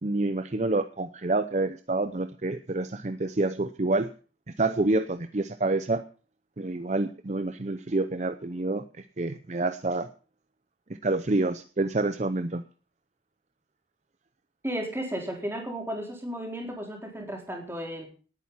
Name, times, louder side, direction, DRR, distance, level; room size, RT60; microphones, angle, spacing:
voice 1, 0.0-4.1 4.6-6.0 6.6-10.1 11.0-12.6, right 2 dB, 40° right, 10 dB, 0.7 m, -28 dB
voice 2, 14.6-18.1, equal, 15° right, 1 dB, 4.0 m, -34 dB
19.0 x 9.1 x 5.7 m, 0.39 s
head